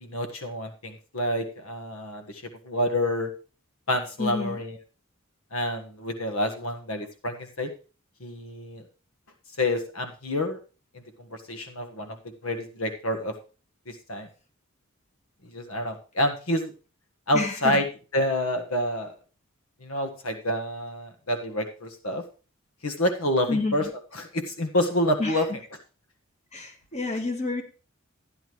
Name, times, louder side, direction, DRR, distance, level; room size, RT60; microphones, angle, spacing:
voice 1, 0.0-3.3 3.9-4.8 5.5-7.7 8.2-8.9 9.6-10.6 10.9-12.2 12.4-13.3 13.9-14.3 15.4-16.7 17.3-17.9 18.1-19.1 19.8-22.2 22.8-23.9 24.1-25.5, left 1 dB, 85° left, 6 dB, 1.5 m, -28 dB
voice 2, 4.2-4.6 17.3-17.8 23.5-23.9 25.2-25.4 26.5-27.6, left 3 dB, 30° left, 4 dB, 1.6 m, -29 dB
12.5 x 10.5 x 3.2 m, 0.35 s
head